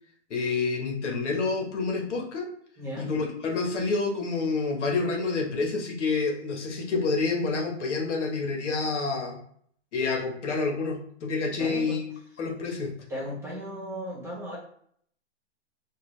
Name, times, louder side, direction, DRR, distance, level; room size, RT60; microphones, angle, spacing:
voice 1, 0.3-2.5 3.0-9.4 9.9-12.0 12.4-12.9, left 4 dB, 75° left, 1 dB, 1.2 m, -28 dB
voice 2, 2.8-3.1 11.6-12.0 13.1-14.6, equal, 5° right, -5 dB, 1.2 m, -35 dB
3.7 x 2.3 x 3.1 m, 0.63 s
hypercardioid pair, 145°, 36 cm